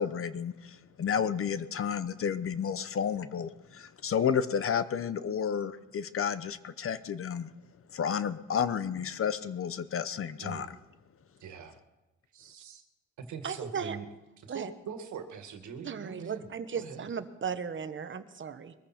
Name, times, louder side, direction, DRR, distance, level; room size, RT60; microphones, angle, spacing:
voice 1, 0.0-7.5 7.9-10.7, left 7 dB, 45° left, 14 dB, 0.9 m, -31 dB
voice 2, 11.4-11.8 12.3-12.8 13.2-14.1 14.4-16.5 16.7-17.1, right 6 dB, 75° right, 7 dB, 2.0 m, -42 dB
voice 3, 13.4-14.0 14.5-14.7 15.8-18.7, right 6 dB, 40° right, 11 dB, 1.2 m, -36 dB
22.0 x 14.5 x 4.4 m, 1.0 s
cardioid pair, 90°, 30 cm